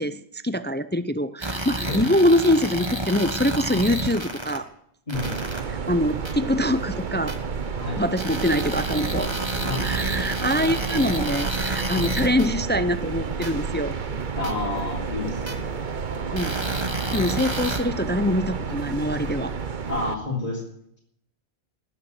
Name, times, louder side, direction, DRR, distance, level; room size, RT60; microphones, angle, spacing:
voice 1, 0.0-4.7 5.7-7.3 8.0-9.3 9.8-13.9 16.3-16.6 17.1-19.5, left 1 dB, 15° left, 12 dB, 0.3 m, -24 dB
sound 1, 1.4-4.6 5.1-5.6 6.3-6.4 7.3-7.4 8.2-12.5 13.4-13.5 14.4-14.5 15.5-15.6 16.4-17.8, right 2 dB, 25° right, 1.6 m, -29 dB
voice 2, 5.1-5.5 7.7-8.0 9.6-9.9 14.3-15.7 19.9-20.6, left 3 dB, 35° left, -6 dB, 3.6 m, -30 dB
sound 2, 5.1-20.1, right 5 dB, 45° right, 1.0 m, -31 dB
20.0 x 6.9 x 8.2 m, 0.74 s
omnidirectional pair, 1.1 m